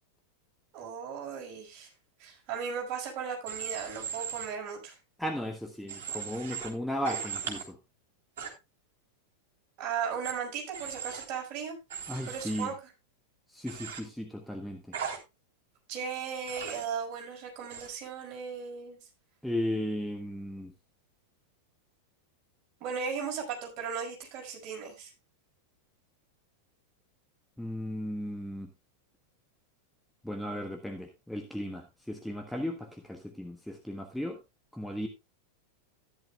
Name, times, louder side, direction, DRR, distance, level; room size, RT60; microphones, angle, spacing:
voice 1, 0.7-1.9 2.2-5.0 9.8-11.8 12.3-12.7 15.9-19.0 22.8-25.1, right 6 dB, 40° right, 0 dB, 5.4 m, -36 dB
Human voice / Train, 3.5-4.5 5.9-6.7 7.0-7.6 8.4-8.5 10.2-10.3 10.7-11.2 11.9-12.7 13.7-14.0 14.9-15.2 16.5-16.9 17.7-17.9, right 7 dB, 55° right, 3.5 m, -38 dB
voice 2, 5.2-7.8 12.1-12.7 13.5-15.0 19.4-20.7 27.6-28.7 30.2-34.4 34.7-35.1, equal, ahead, 3 dB, 1.3 m, -35 dB
13.5 x 11.0 x 2.3 m, 0.25 s
figure-of-eight pair, 90°, 0 cm